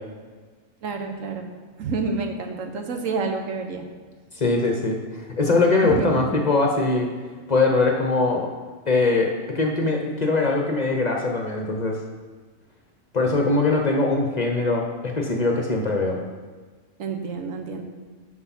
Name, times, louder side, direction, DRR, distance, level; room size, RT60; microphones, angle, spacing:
voice 1, 0.8-1.5 1.8-3.8 5.8-6.3 17.0-17.8, right 4 dB, 80° right, 4 dB, 1.3 m, -28 dB
voice 2, 4.3-7.1 7.5-8.5 8.9-12.0 13.1-16.2, left 3 dB, 40° left, 1 dB, 0.8 m, -22 dB
11.5 x 4.7 x 4.1 m, 1.4 s
omnidirectional pair, 1.3 m